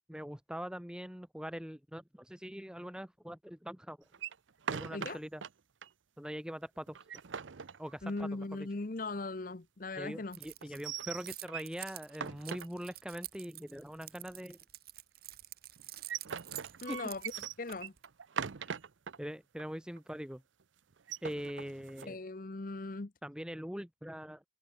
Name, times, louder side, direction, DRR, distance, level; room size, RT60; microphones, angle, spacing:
voice 1, 0.1-4.0 4.7-5.4 6.2-7.2 7.8-8.7 10.0-14.6 16.9-17.0 19.2-20.4 21.2-22.2 23.2-24.4, equal, 5° right, 1.0 m, -42 dB
sound 1, 4.1-5.5 5.8-5.9 6.2-6.3 6.9-8.4 10.6-11.8 12.1-13.2 15.8-19.2 19.6-19.7 20.0-20.3 20.9-22.1, right 7 dB, 80° right, 0.7 m, -41 dB
voice 2, 8.0-10.4 10.6-10.7 16.8-17.2 17.6-17.9 22.1-23.1, left 2 dB, 45° left, 0.8 m, -39 dB
Keys jangling, 10.3-18.1, right 15 dB, 55° right, 2.2 m, -48 dB
head